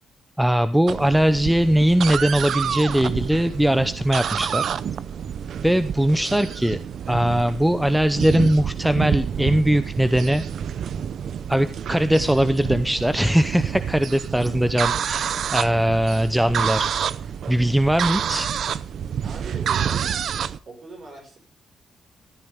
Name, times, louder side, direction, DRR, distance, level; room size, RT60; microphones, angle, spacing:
voice 1, 0.4-4.7 5.6-6.8 7.1-10.4 11.5-16.9 17.5-18.5, equal, 5° right, 12 dB, 0.7 m, -20 dB
sound 1, 0.9-20.6, right 8 dB, 60° right, 0.7 m, -28 dB
voice 2, 14.2-14.6 19.2-20.1 20.7-21.4, right 3 dB, 40° right, 4 dB, 5.6 m, -41 dB
15.0 x 13.5 x 3.6 m, 0.39 s
cardioid pair, 140°, 0 cm